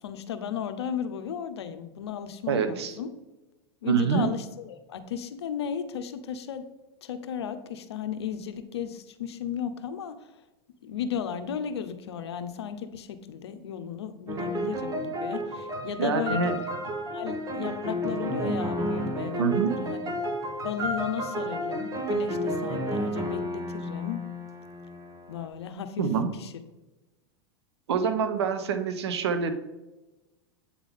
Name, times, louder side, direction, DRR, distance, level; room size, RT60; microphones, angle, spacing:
voice 1, 0.0-3.1 3.8-6.7 7.0-10.3 10.8-16.5 17.1-20.0 20.6-24.2 25.3-26.0 26.4-26.5, left 8 dB, 85° left, 9 dB, 0.7 m, -35 dB
voice 2, 2.5-2.9 3.8-4.3 16.0-16.6 19.4-19.7 26.0-26.3 27.9-29.5, right 6 dB, 85° right, 10 dB, 0.8 m, -26 dB
sound 1, 14.3-25.5, equal, 25° right, 1.0 m, -31 dB
8.4 x 3.7 x 3.6 m, 1.1 s
hypercardioid pair, 110°, 14 cm